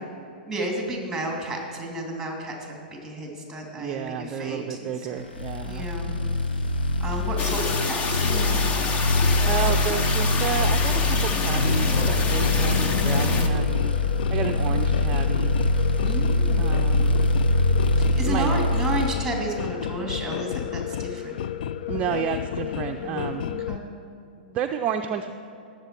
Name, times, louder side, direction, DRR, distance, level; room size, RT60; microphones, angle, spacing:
voice 1, 0.5-4.9 5.6-6.2 7.0-8.9 12.6-13.0 14.4-14.7 16.0-16.8 18.0-21.3 23.0-23.9, right 1 dB, 5° right, 0 dB, 2.9 m, -32 dB
voice 2, 3.7-5.9 9.4-14.0 14.3-15.6 16.6-17.2 18.2-18.6 21.9-23.4 24.4-25.3, right 8 dB, 30° right, 5 dB, 0.5 m, -31 dB
vibrations cloth, 5.3-19.1, left 2 dB, 80° left, 1.1 m, -23 dB
sound 1, 7.4-13.5, left 4 dB, 25° left, 1.0 m, -27 dB
sound 2, 11.9-23.8, left 9 dB, 60° left, 0.4 m, -32 dB
18.5 x 7.6 x 4.6 m, 2.6 s
hypercardioid pair, 115°, 5 cm